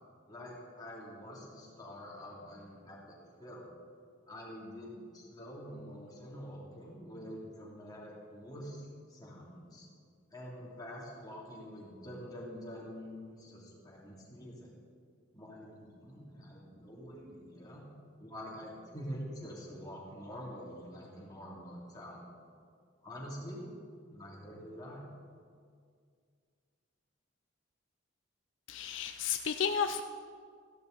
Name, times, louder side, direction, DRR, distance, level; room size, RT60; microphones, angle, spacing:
voice 1, 0.3-3.7 4.3-8.8 9.1-9.9 10.3-14.7 15.3-17.8 18.2-22.3 23.0-23.7 24.1-25.0, equal, 20° left, -4 dB, 2.7 m, -46 dB
voice 2, 28.7-30.0, left 7 dB, 70° left, 8 dB, 0.4 m, -32 dB
15.0 x 11.5 x 3.9 m, 2.1 s
head